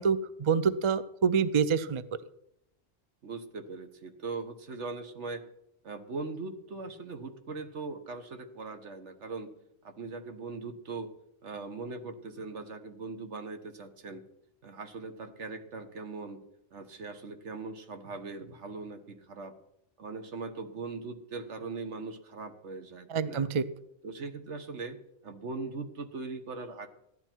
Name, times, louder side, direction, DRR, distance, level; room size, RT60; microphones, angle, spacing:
voice 1, 0.0-2.0 23.1-23.6, right 6 dB, 40° right, 15 dB, 0.4 m, -26 dB
voice 2, 3.2-5.4 5.8-9.5 9.8-11.1 11.4-14.3 14.6-16.4 16.7-19.6 20.0-23.5 24.0-26.9, right 3 dB, 80° right, 8 dB, 1.5 m, -40 dB
15.0 x 11.0 x 4.5 m, 0.78 s
omnidirectional pair, 1.2 m